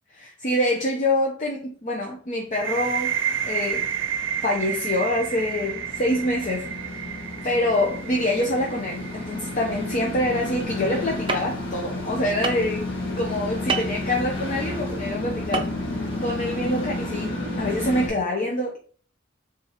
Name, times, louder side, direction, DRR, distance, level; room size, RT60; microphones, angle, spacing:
voice 1, 0.1-3.1 3.4-3.9 4.4-12.8 13.2-15.7 16.2-18.8, left 1 dB, 40° left, 0.6 m, -26 dB
sound 1, 2.5-10.1, right 8 dB, 75° right, 0.6 m, -31 dB
sound 2, 3.1-18.1, left 1 dB, 70° left, 1.7 m, -32 dB
sound 3, 11.3-11.4 12.4-12.7 13.7-13.9 15.5-15.7 16.0-16.1, right 4 dB, 25° right, 0.5 m, -25 dB
3.6 x 2.8 x 4.8 m
head